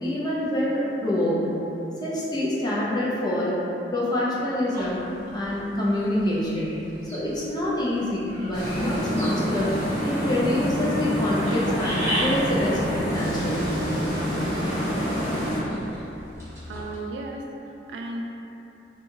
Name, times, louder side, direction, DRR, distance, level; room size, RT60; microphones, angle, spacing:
voice 1, 0.0-1.6 2.0-3.6 3.9-6.8 7.1-9.7 10.0-13.8, left 1 dB, 25° left, -7 dB, 0.5 m, -26 dB
sound 1, 4.7-17.0, equal, 15° right, 0.9 m, -38 dB
sound 2, 8.5-15.6, equal, 40° left, 1.2 m, -27 dB
voice 2, 16.7-18.2, right 2 dB, 85° right, 1 dB, 0.3 m, -35 dB
2.6 x 2.3 x 2.8 m, 3.0 s
head